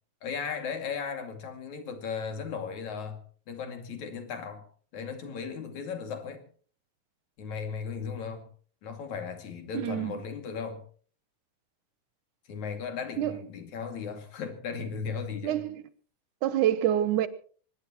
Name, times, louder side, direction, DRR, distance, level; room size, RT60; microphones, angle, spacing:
voice 1, 0.2-3.2 3.5-4.7 4.9-6.4 7.4-8.5 8.8-10.8 12.5-15.6, left 6 dB, 70° left, 3.8 m, -36 dB
voice 2, 9.7-10.1 13.2-13.4 15.4-15.8 16.4-17.3, right 11 dB, 90° right, 2.6 m, -26 dB
23.5 x 20.0 x 3.0 m
omnidirectional pair, 3.5 m